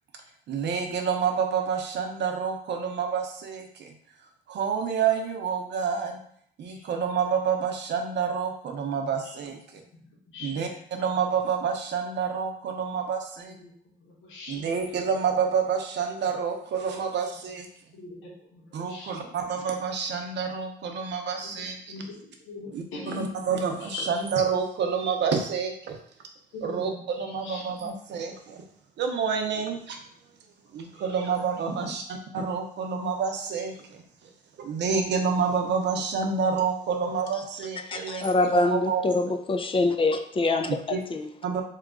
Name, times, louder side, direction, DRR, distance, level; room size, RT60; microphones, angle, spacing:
voice 1, 0.5-3.9 4.5-6.2 6.6-9.8 10.4-13.5 14.5-17.7 18.7-21.8 22.7-26.0 26.6-28.6 29.0-30.0 30.7-32.0 32.3-34.3 34.6-39.0 40.9-41.0 41.4-41.6, right 6 dB, 60° right, 4 dB, 0.6 m, -28 dB
voice 2, 10.1-10.7 13.5-13.7 14.0-14.7 17.9-19.2 21.9-23.4 23.8-24.0 26.5-27.0 27.4-27.9 37.9-38.1, left 2 dB, 85° left, -4 dB, 1.1 m, -41 dB
voice 3, 37.9-41.3, left 2 dB, 25° left, 6 dB, 0.4 m, -25 dB
2.8 x 2.3 x 3.6 m, 0.63 s
cardioid pair, 90°, 20 cm